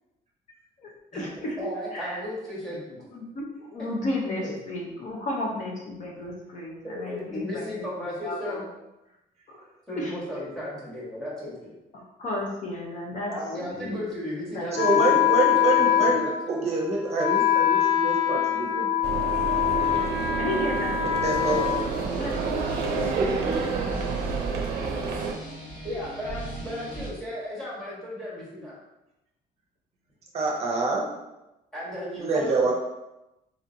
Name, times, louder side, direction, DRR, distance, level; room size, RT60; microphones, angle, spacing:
voice 1, 0.8-2.3 3.1-7.9 8.2-8.6 9.5-9.6 9.9-10.4 11.9-14.0 14.5-14.7 20.4-21.0 22.2-22.7, left 1 dB, 50° left, -2 dB, 0.7 m, -33 dB
voice 2, 1.6-3.0 3.8-3.9 4.4-4.5 6.8-8.6 9.9-11.7 13.3-16.8 22.8-23.2 25.8-28.8 31.7-32.7, left 1 dB, 5° left, -7 dB, 1.2 m, -35 dB
Wind instrument woodwind instrument, 14.7-22.5, left 10 dB, 85° left, 1.1 m, -24 dB
voice 3, 14.7-16.2 16.5-18.9 21.2-22.2 23.1-23.8 30.3-31.1 32.2-32.7, right 3 dB, 40° right, -1 dB, 0.6 m, -26 dB
sound 1, 19.0-25.3, right 5 dB, 90° right, 0.5 m, -30 dB
sound 2, 21.3-27.1, right 2 dB, 25° left, 1.3 m, -37 dB
4.2 x 2.8 x 2.6 m, 0.96 s
cardioid pair, 160°, 17 cm